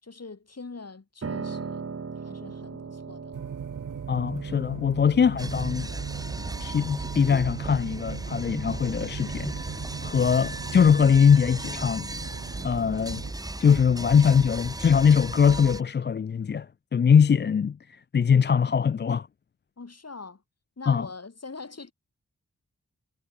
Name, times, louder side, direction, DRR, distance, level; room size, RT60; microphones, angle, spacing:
voice 1, 0.0-3.4 19.8-20.4 20.8-21.9, left 4 dB, 55° left, 7.6 m, -43 dB
Piano, 1.2-11.2, right 5 dB, 50° right, 1.3 m, -41 dB
sound 1, 3.3-13.3, right 8 dB, 85° right, 1.0 m, -39 dB
voice 2, 4.1-5.9 6.6-9.6 10.0-12.1 12.6-13.2 13.6-19.3 20.9-21.1, left 7 dB, 35° left, 0.4 m, -22 dB
sound 2, 5.4-15.8, right 2 dB, 10° right, 0.8 m, -36 dB
cardioid pair, 55°, 31 cm